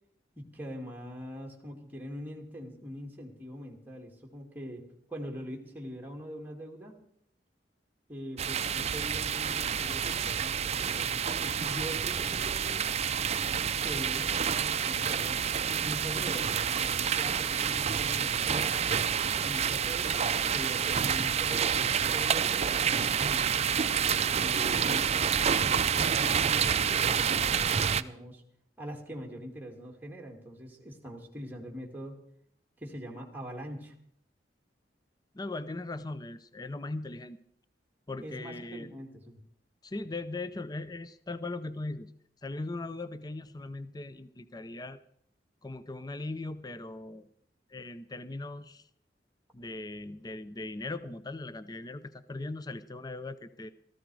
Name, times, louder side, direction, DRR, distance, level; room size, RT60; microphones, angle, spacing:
voice 1, 0.4-6.9 8.1-12.9 13.8-18.8 19.4-23.6 24.3-28.4 28.8-32.2 32.8-33.9 38.2-39.4, equal, 10° right, 0 dB, 2.3 m, -43 dB
sound 1, 8.4-28.0, right 7 dB, 35° right, 0.5 m, -28 dB
voice 2, 35.3-37.4 38.1-38.9 39.8-42.1 42.4-45.0 45.6-47.3 47.7-48.9 49.5-53.7, left 2 dB, 25° left, 14 dB, 0.6 m, -39 dB
17.5 x 14.0 x 4.8 m, 0.69 s
head